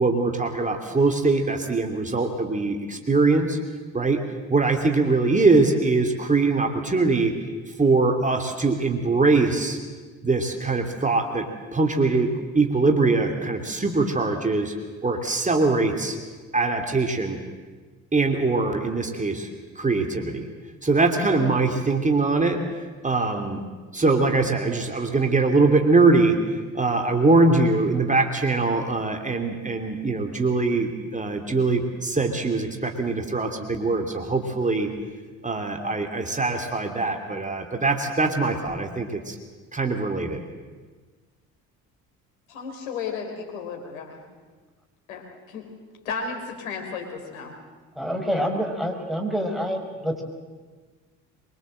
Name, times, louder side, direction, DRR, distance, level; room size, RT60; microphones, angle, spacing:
voice 1, 0.0-3.6 3.9-4.2 4.5-7.3 7.8-9.8 10.2-14.7 15.0-16.2 16.5-17.4 18.1-19.5 19.8-20.5 20.8-22.6 23.0-23.6 23.9-26.4 26.7-34.9 35.4-39.3 39.7-40.4, right 3 dB, 15° right, 4 dB, 2.9 m, -22 dB
voice 2, 42.5-44.2 45.1-45.7 46.1-47.6, left 5 dB, 70° left, 2 dB, 3.9 m, -34 dB
voice 3, 48.0-50.2, equal, ahead, 3 dB, 5.2 m, -27 dB
23.5 x 23.5 x 7.7 m, 1.4 s
figure-of-eight pair, 55°, 42 cm